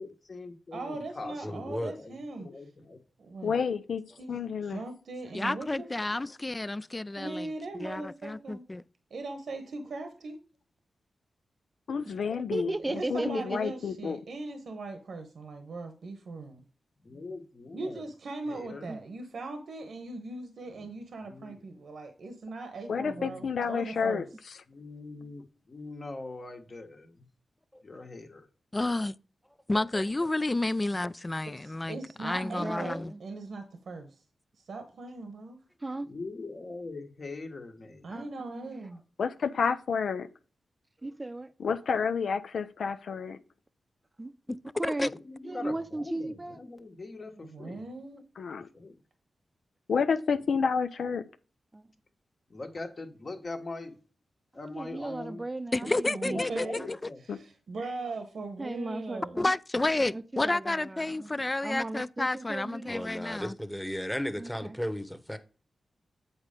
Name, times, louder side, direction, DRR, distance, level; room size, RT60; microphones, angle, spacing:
voice 1, 0.0-3.0 17.0-18.0 18.5-18.9 20.7-20.9 21.2-21.6 22.9-23.5 24.7-27.3 27.8-28.5 36.1-38.1 45.1-47.8 48.5-49.0 52.5-54.0 54.5-55.4 56.3-57.2, left 3 dB, 50° left, 1.6 m, -42 dB
voice 2, 0.7-2.5 3.2-3.5 4.2-5.9 7.2-8.6 9.1-10.4 12.9-16.6 17.7-24.2 31.5-34.1 34.7-35.6 38.0-39.0 47.4-48.2 55.8-56.9 57.3-59.4, right 3 dB, 75° right, 1.0 m, -39 dB
voice 3, 1.4-2.0 8.0-8.1 27.7-27.8 62.9-65.4, equal, 5° left, 1.1 m, -35 dB
voice 4, 3.4-4.0 4.3-4.8 11.9-14.2 22.9-24.2 39.2-40.3 41.6-43.4 48.4-48.7 49.9-51.2 57.3-57.4, left 6 dB, 80° left, 0.5 m, -30 dB
voice 5, 5.3-8.8 28.7-29.1 29.7-33.1 45.0-45.1 55.7-56.8 59.4-63.5, left 2 dB, 25° left, 0.4 m, -30 dB
voice 6, 12.3-13.7 18.9-19.0 32.4-33.2 35.8-36.1 38.1-38.9 41.0-41.5 44.2-45.1 45.4-46.6 48.0-48.1 51.7-51.9 54.7-56.4 58.6-59.5 60.1-61.3 61.6-63.0 64.4-64.8, right 2 dB, 25° right, 0.6 m, -36 dB
8.0 x 4.3 x 5.1 m
cardioid pair, 55°, 0 cm